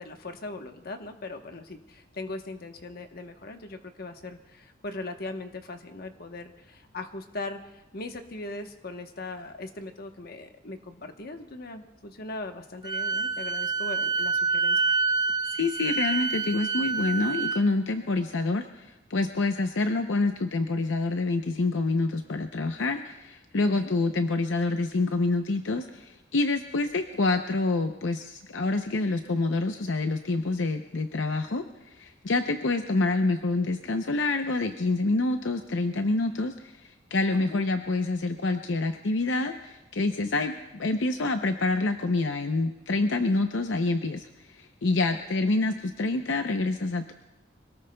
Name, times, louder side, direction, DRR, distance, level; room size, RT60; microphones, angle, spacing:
voice 1, 0.0-14.9 23.6-23.9 37.3-37.7 45.1-45.2, left 2 dB, 55° left, 6 dB, 1.1 m, -39 dB
Wind instrument woodwind instrument, 12.8-17.6, right 4 dB, 20° right, 0.5 m, -27 dB
voice 2, 15.5-18.7 19.1-31.6 32.0-36.5 37.1-44.3 44.6-47.1, left 3 dB, 75° left, 6 dB, 0.7 m, -27 dB
25.0 x 18.5 x 2.3 m, 0.98 s
head